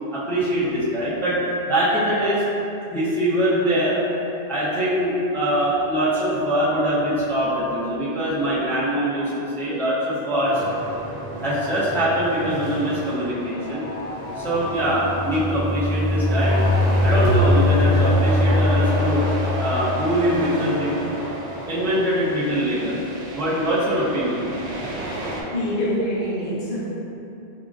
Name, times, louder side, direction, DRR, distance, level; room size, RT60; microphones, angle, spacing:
voice 1, 0.1-1.4 1.7-2.4 2.9-4.0 4.5-10.6 11.4-13.8 14.4-16.6 17.0-19.2 19.6-21.0 21.7-23.0 23.3-24.4, equal, 5° left, -10 dB, 0.5 m, -23 dB
sound 1, 10.4-25.4, right 1 dB, 85° right, 0.9 m, -31 dB
sound 2, 14.6-20.2, left 2 dB, 70° left, 1.1 m, -21 dB
voice 2, 25.1-26.8, equal, 55° left, -8 dB, 1.0 m, -26 dB
4.8 x 2.5 x 2.4 m, 2.9 s
omnidirectional pair, 1.1 m